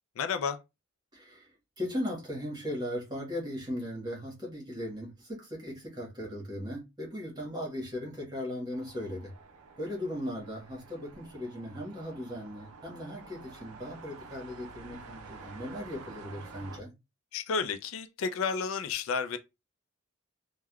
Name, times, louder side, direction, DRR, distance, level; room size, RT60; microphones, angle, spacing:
voice 1, 0.2-0.6 17.3-19.4, left 5 dB, 70° left, 0.4 m, -31 dB
voice 2, 1.1-9.3 9.8-16.9, left 1 dB, 20° right, 1.2 m, -38 dB
sound 1, 8.7-16.8, right 4 dB, 90° right, 0.5 m, -50 dB
3.4 x 2.2 x 2.2 m
head